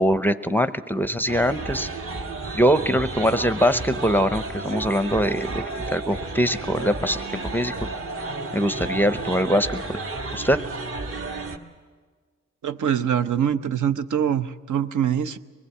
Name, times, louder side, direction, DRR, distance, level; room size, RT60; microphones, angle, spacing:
voice 1, 0.0-1.9 2.5-7.7 8.5-10.0 10.3-10.6, equal, 5° left, 12 dB, 0.6 m, -22 dB
sound 1, 1.3-11.6, right 3 dB, 45° right, 1.6 m, -32 dB
voice 2, 12.6-15.4, right 9 dB, 70° right, 11 dB, 0.9 m, -24 dB
24.0 x 21.0 x 8.3 m, 1.5 s
wide cardioid pair, 115°, 31 cm